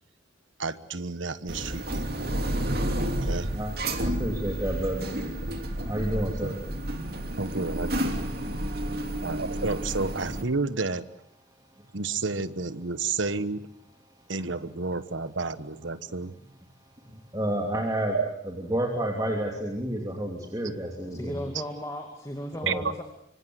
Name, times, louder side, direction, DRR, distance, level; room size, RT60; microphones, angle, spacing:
voice 1, 0.6-2.3 3.2-3.5 6.4-6.6 7.4-8.3 9.2-11.0 11.9-13.7 14.3-16.3 18.1-18.3 18.6-18.7 22.7-22.8, right 4 dB, 75° right, 1.3 m, -31 dB
sound 1, 1.5-10.4, right 1 dB, 50° right, 3.0 m, -31 dB
voice 2, 4.2-5.1 5.8-6.6 17.0-18.2 18.7-21.4 22.6-22.8, right 1 dB, 20° right, 3.0 m, -29 dB
voice 3, 21.1-23.0, equal, 15° left, 2.3 m, -36 dB
25.5 x 24.5 x 8.0 m
head